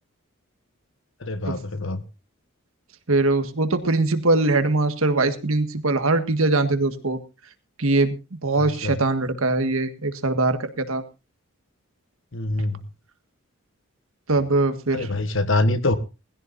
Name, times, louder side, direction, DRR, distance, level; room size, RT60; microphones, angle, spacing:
voice 1, 1.2-2.0 8.6-9.0 12.3-12.8 14.9-16.0, left 2 dB, 60° left, 1.3 m, -24 dB
voice 2, 3.1-7.2 7.8-11.0 14.3-15.1, right 2 dB, 75° right, 1.7 m, -22 dB
20.0 x 15.5 x 2.6 m
head